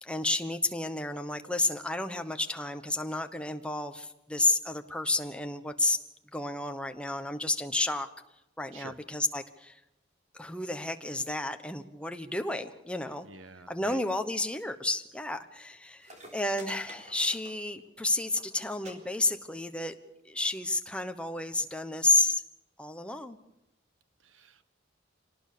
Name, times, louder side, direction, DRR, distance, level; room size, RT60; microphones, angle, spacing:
voice 1, 0.0-6.0 6.3-8.1 8.6-9.8 10.3-13.3 13.7-20.0 20.2-22.4 22.8-23.4, left 2 dB, 5° left, 7 dB, 1.1 m, -31 dB
voice 2, 13.2-14.0 24.2-24.6, right 3 dB, 80° right, 13 dB, 1.3 m, -48 dB
sound 1, 15.7-15.8 16.0-17.9 18.2-18.5 18.8-18.9 19.2-19.7 20.5-20.6, right 1 dB, 35° right, 4.2 m, -50 dB
25.0 x 18.5 x 6.8 m, 0.88 s
head